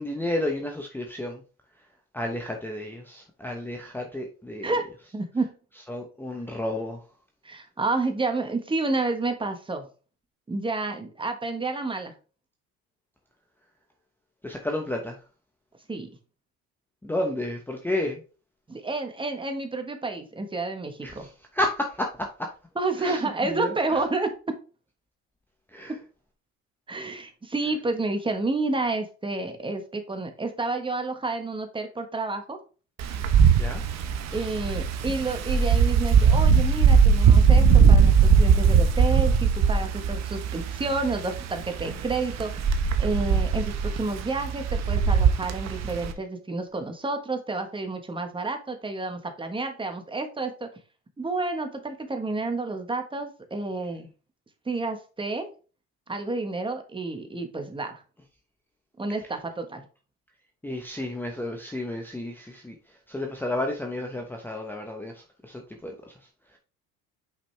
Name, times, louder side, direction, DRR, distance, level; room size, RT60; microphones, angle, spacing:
voice 1, 0.0-1.4 2.1-4.7 5.9-7.0 14.4-15.2 17.0-18.2 21.0-22.5 23.0-24.0 25.7-25.9 33.5-33.8 60.6-62.8 63.1-66.1, left 1 dB, 5° left, 0.8 m, -32 dB
voice 2, 4.6-5.5 7.4-9.9 10.5-12.1 15.9-16.1 18.7-21.3 22.8-24.5 26.9-32.6 34.3-50.7 51.2-54.1 54.6-55.5 56.1-58.0 59.0-59.8, right 3 dB, 15° right, 1.3 m, -30 dB
Wind, 33.0-46.1, right 6 dB, 50° right, 1.0 m, -20 dB
6.0 x 5.2 x 3.3 m
supercardioid pair, 110°, 33 cm